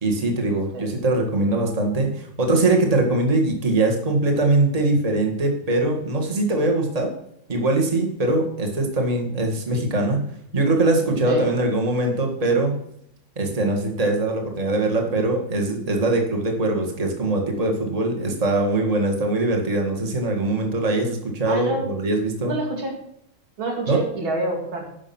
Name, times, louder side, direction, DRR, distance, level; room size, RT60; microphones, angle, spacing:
voice 1, 0.0-7.1 7.5-10.2 10.5-12.7 13.4-22.5 23.9-24.0, right 2 dB, 20° right, 2 dB, 1.8 m, -22 dB
voice 2, 21.5-21.9 22.4-23.0 23.6-24.9, right 2 dB, 85° right, 1 dB, 3.1 m, -27 dB
11.0 x 6.3 x 5.9 m, 0.73 s
omnidirectional pair, 2.1 m